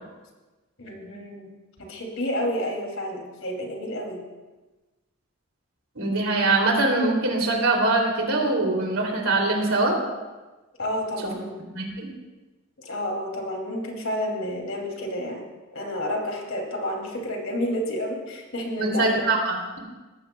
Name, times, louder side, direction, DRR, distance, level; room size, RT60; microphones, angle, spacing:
voice 1, 0.8-1.5 1.8-4.2 10.8-11.6 12.8-15.5 15.7-19.1, left 1 dB, 70° left, 1 dB, 2.7 m, -30 dB
voice 2, 5.9-9.9 11.2-11.3 11.7-12.1 18.8-19.8, right 2 dB, 75° right, 0 dB, 2.9 m, -23 dB
19.0 x 14.0 x 2.3 m, 1.2 s
head